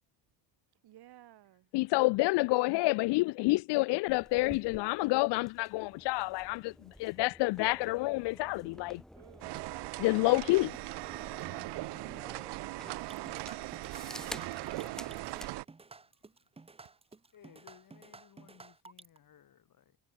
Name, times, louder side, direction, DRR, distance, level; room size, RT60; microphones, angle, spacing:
voice 1, 0.8-1.7 9.1-9.6, right 14 dB, 70° right, 1.9 m, -59 dB
voice 2, 1.7-9.0 10.0-10.8, left 22 dB, 85° left, 0.5 m, -28 dB
sound 1, 4.1-15.5, equal, ahead, 2.6 m, -51 dB
sound 2, 9.4-15.6, right 19 dB, 90° right, 1.1 m, -39 dB
sound 3, 13.0-19.2, right 3 dB, 15° right, 0.9 m, -53 dB
voice 3, 17.3-20.0, left 9 dB, 55° left, 5.3 m, -59 dB
cardioid pair, 110°, 40 cm